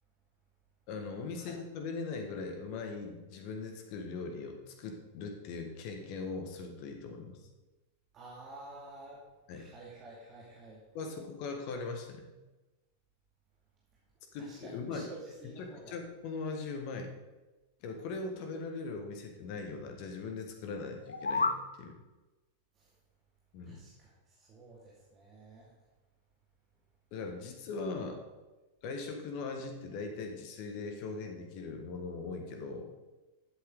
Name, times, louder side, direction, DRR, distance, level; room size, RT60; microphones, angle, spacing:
voice 1, 0.9-7.4 9.5-9.6 10.9-12.3 14.3-15.1 15.4-17.1 17.8-21.9 23.5-23.8 27.1-28.2 28.8-32.9, left 4 dB, 45° left, 4 dB, 1.7 m, -40 dB
voice 2, 8.1-9.2 9.5-10.8 14.4-16.0 22.8-22.9 23.6-25.7, right 2 dB, 30° right, -5 dB, 2.4 m, -50 dB
sound 1, 20.9-21.7, left 3 dB, 80° left, 0.5 m, -31 dB
12.0 x 8.0 x 3.9 m, 1.1 s
figure-of-eight pair, 90°, 0 cm